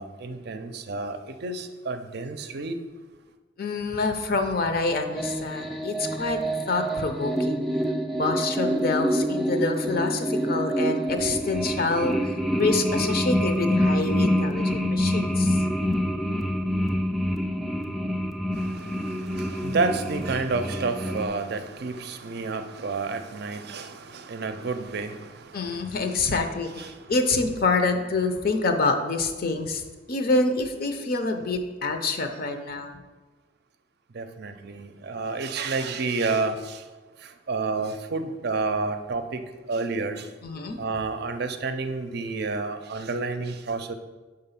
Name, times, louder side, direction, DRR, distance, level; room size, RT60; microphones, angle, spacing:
voice 1, 0.0-2.8 18.5-25.5 26.8-26.9 34.1-36.8 37.5-39.4 39.7-40.3 40.8-43.9, right 3 dB, 60° right, 0.5 m, -30 dB
voice 2, 3.6-6.4 6.7-7.6 8.2-15.6 25.5-26.8 27.1-29.8 30.1-33.0 40.4-40.8, left 3 dB, 50° left, 0.6 m, -26 dB
sound 1, 5.2-21.3, equal, ahead, 0.3 m, -26 dB
6.0 x 3.9 x 5.7 m
head